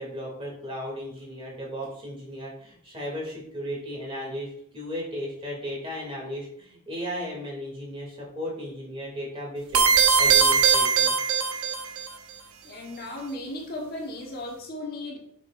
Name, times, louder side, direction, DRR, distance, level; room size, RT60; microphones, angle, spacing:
voice 1, 0.0-11.1, equal, 25° right, -3 dB, 2.7 m, -35 dB
sound 1, 9.7-12.1, right 6 dB, 80° right, 1.0 m, -20 dB
voice 2, 12.6-15.2, left 1 dB, 45° left, -1 dB, 1.3 m, -36 dB
7.8 x 6.4 x 2.6 m, 0.68 s
head